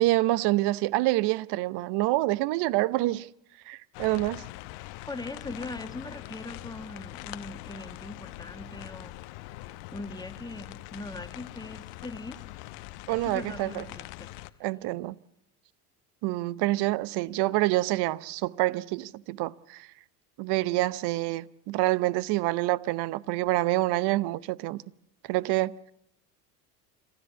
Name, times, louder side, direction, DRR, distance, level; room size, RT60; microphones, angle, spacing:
voice 1, 0.0-3.3 3.7-4.5 13.1-13.8 14.6-15.1 16.2-19.9 20.4-24.8 25.3-25.7, right 18 dB, 55° right, 0.8 m, -27 dB
sound 1, 3.9-14.5, left 19 dB, 65° left, 1.0 m, -43 dB
voice 2, 5.1-9.2 9.6-12.4 13.2-14.3, left 2 dB, 10° left, 1.6 m, -40 dB
27.0 x 13.5 x 8.2 m
hypercardioid pair, 80°, 48 cm